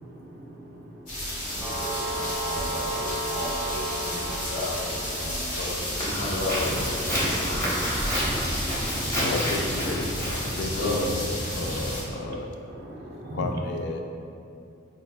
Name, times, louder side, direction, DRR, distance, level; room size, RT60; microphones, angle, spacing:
voice 1, 0.0-1.6 1.9-2.0 2.6-3.5 5.8-5.9 7.1-9.3 9.7-10.6 11.6-11.8 12.2-12.4 12.7-13.6, right 1 dB, 55° right, -1 dB, 0.3 m, -41 dB
sound 1, 1.1-12.0, left 1 dB, 40° left, 1.0 m, -32 dB
voice 2, 1.4-7.9 10.8-11.0, left 1 dB, 90° left, -4 dB, 0.7 m, -34 dB
sound 2, 1.6-5.7, right 1 dB, 10° right, 1.0 m, -33 dB
Walk footsteps, 6.0-12.1, equal, 15° left, 0.7 m, -30 dB
voice 3, 9.1-11.2 11.6-12.5 13.3-14.0, left 3 dB, 60° left, 3 dB, 0.3 m, -32 dB
4.7 x 2.6 x 2.2 m, 2.6 s
head